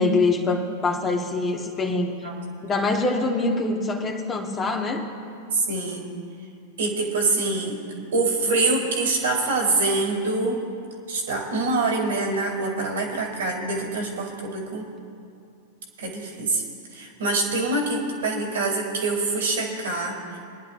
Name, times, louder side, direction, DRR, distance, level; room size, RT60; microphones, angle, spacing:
voice 1, 0.0-2.3 2.6-5.0, left 3 dB, 25° left, 1 dB, 1.6 m, -24 dB
voice 2, 5.5-6.0 6.8-7.8 8.1-10.6 11.1-14.9 16.0-16.6 16.9-20.4, right 3 dB, 75° right, -1 dB, 2.9 m, -25 dB
23.5 x 10.5 x 2.6 m, 2.5 s
hypercardioid pair, 100°, 0 cm